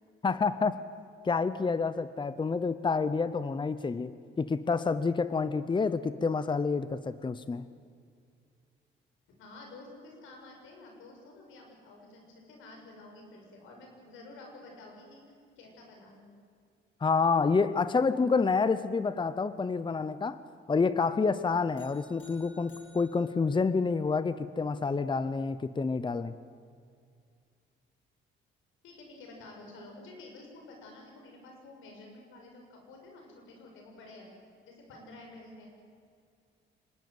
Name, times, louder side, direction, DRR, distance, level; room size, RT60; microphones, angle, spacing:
voice 1, 0.2-0.8 1.2-7.6 17.0-20.4 20.7-26.3, left 4 dB, 25° left, 14 dB, 0.8 m, -28 dB
voice 2, 9.4-15.2 15.6-16.3 28.8-34.3 34.6-35.7, left 2 dB, 90° left, 1 dB, 6.4 m, -50 dB
sound 1, 21.8-24.2, left 1 dB, 75° left, 7.7 m, -59 dB
25.0 x 20.0 x 8.0 m, 2.2 s
cardioid pair, 90°, 20 cm